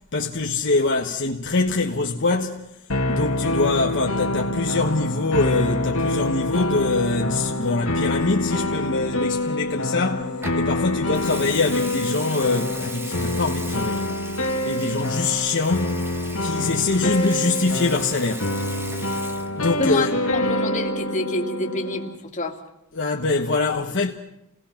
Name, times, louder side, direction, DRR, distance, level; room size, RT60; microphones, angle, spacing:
voice 1, 0.1-2.7 3.1-14.2 14.6-16.1 16.4-18.5 19.5-20.2 22.9-24.1, left 3 dB, 60° left, 1.3 m, -24 dB
sound 1, 2.9-22.1, left 1 dB, 85° left, 2.3 m, -26 dB
Water tap faucet / Sink (filling or washing) / Liquid, 10.4-10.7 11.1-19.9 20.1-20.5, right 2 dB, 10° right, 1.3 m, -38 dB
voice 2, 19.7-22.6, left 2 dB, 35° left, 2.3 m, -28 dB
29.5 x 19.0 x 5.9 m
head